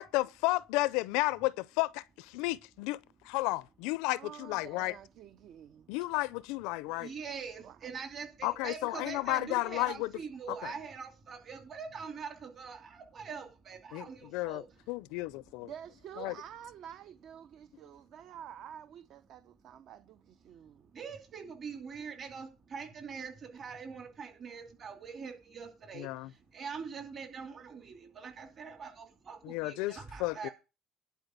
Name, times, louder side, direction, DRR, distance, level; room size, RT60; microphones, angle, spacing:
voice 1, 0.0-3.0 3.2-4.9 5.9-7.1 8.4-10.1 10.5-10.7 13.9-15.7 16.2-16.3 26.0-26.3 29.4-30.5, left 20 dB, 90° left, 0.4 m, -33 dB
voice 2, 4.1-5.9 7.6-7.9 15.6-20.9, right 9 dB, 55° right, 0.7 m, -49 dB
voice 3, 6.9-14.6 20.9-30.5, right 6 dB, 35° right, 2.7 m, -43 dB
11.0 x 4.6 x 8.1 m
cardioid pair, 135°, 0 cm